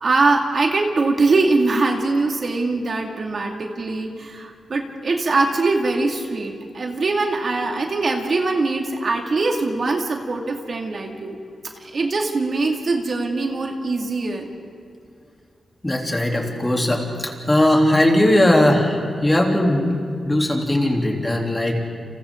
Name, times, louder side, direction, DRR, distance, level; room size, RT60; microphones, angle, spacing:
voice 1, 0.0-11.4 11.8-14.5, right 3 dB, 55° right, 2 dB, 2.3 m, -22 dB
voice 2, 15.8-21.8, left 1 dB, 20° left, 0 dB, 3.3 m, -19 dB
30.0 x 27.5 x 3.9 m, 2.2 s
cardioid pair, 85°, 0 cm